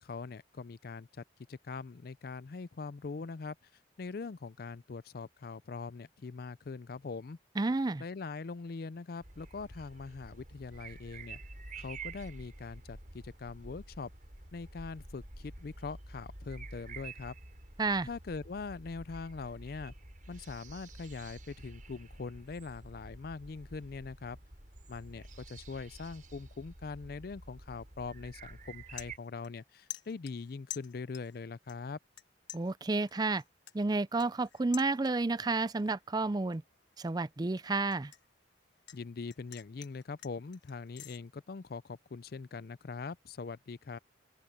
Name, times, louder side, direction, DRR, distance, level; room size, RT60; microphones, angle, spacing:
voice 1, 0.0-3.6 4.0-7.4 8.0-11.4 11.8-14.1 14.5-17.3 18.1-19.9 20.3-24.4 24.9-32.0 38.9-44.0, left 4 dB, 55° left, 0.4 m, -42 dB
voice 2, 7.6-8.0 17.8-18.1 32.5-33.4 33.7-36.6 37.0-38.1, right 3 dB, 20° right, 0.4 m, -31 dB
sound 1, 9.2-29.2, right 3 dB, 45° right, 6.9 m, -49 dB
sound 2, 29.0-29.6 29.9-31.4 31.7-32.2 32.5-35.4 35.8-36.1 36.5-39.0 39.3-41.2, left 12 dB, 75° left, 1.2 m, -48 dB
open air
head